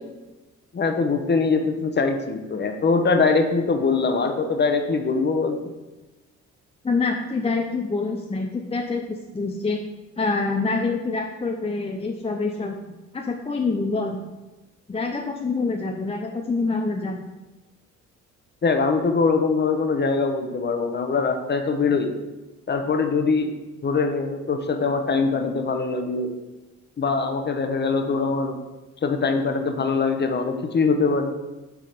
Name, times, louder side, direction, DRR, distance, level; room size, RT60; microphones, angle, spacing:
voice 1, 0.7-5.6 18.6-22.1 22.7-23.5 23.8-26.3 27.0-28.5 29.0-31.3, left 4 dB, 35° left, 6 dB, 0.9 m, -22 dB
voice 2, 6.8-9.8 10.2-12.7 13.1-14.2 14.9-17.2, left 3 dB, 20° left, 2 dB, 0.6 m, -26 dB
7.5 x 3.8 x 5.0 m, 1.1 s
cardioid pair, 90°, 30 cm